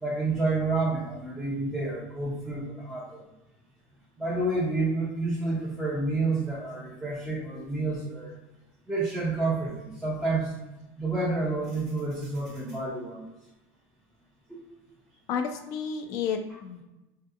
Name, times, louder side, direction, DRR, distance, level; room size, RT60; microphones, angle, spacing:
voice 1, 0.0-3.2 4.2-8.3 8.9-10.5 11.0-13.3 14.5-14.6, right 3 dB, 5° right, -8 dB, 0.5 m, -29 dB
voice 2, 15.3-16.8, left 6 dB, 45° left, 6 dB, 0.4 m, -31 dB
3.5 x 2.7 x 2.4 m, 0.98 s
cardioid pair, 170°, 8 cm